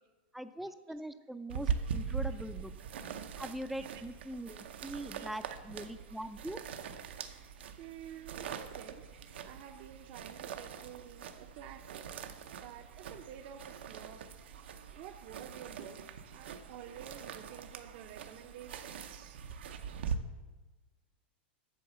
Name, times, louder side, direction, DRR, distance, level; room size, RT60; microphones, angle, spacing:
voice 1, 0.3-2.7 3.4-6.6, right 1 dB, ahead, 11 dB, 0.4 m, -42 dB
sound 1, 1.5-20.2, right 7 dB, 85° right, 0.7 m, -42 dB
voice 2, 7.8-9.0 9.4-12.1 12.6-14.3 14.9-16.0 16.3-19.4, right 9 dB, 50° right, 6 dB, 0.6 m, -50 dB
8.5 x 6.2 x 7.4 m, 1.2 s
supercardioid pair, 145°, 6 cm